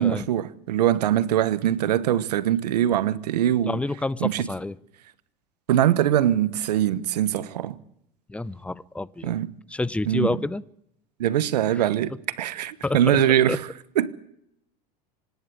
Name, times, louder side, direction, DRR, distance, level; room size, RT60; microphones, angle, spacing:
voice 1, 0.0-3.8 4.2-4.5 5.7-7.8 9.2-9.5 10.0-10.3 11.2-13.7 14.0-14.1, right 11 dB, 90° right, 1.2 m, -22 dB
voice 2, 3.7-4.7 8.3-9.3 9.7-10.6 11.8-11.9 12.8-13.2 13.5-13.6, left 2 dB, 5° left, 0.7 m, -28 dB
25.5 x 10.5 x 9.9 m
supercardioid pair, 105°, 20 cm